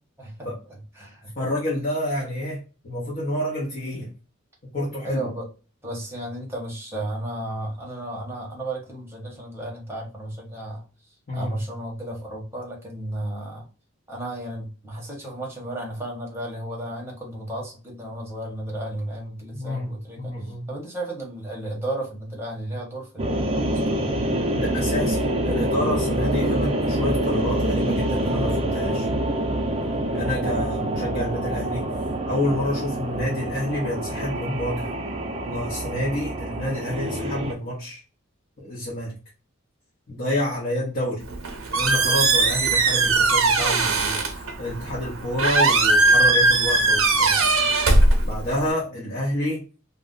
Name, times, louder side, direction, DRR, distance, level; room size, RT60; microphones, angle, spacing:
voice 1, 0.2-1.3 5.0-5.5 5.8-10.8 11.3-13.7 14.1-24.1 48.9-49.1, right 1 dB, 10° right, -2 dB, 0.9 m, -34 dB
voice 2, 1.4-2.6 2.8-4.1 4.7-5.3 11.3-11.6 19.5-19.9 20.2-20.7 24.5-29.1 30.1-31.9 32.3-34.9 35.4-38.0 38.6-39.2 40.1-41.2 41.7-47.4 48.2-49.6, left 1 dB, 45° left, -5 dB, 0.8 m, -28 dB
hell's choir (sfx), 23.2-37.5, right 1 dB, 30° right, 0.4 m, -26 dB
Squeak, 41.2-48.7, right 3 dB, 80° right, 0.6 m, -20 dB
2.4 x 2.0 x 3.7 m, 0.34 s
head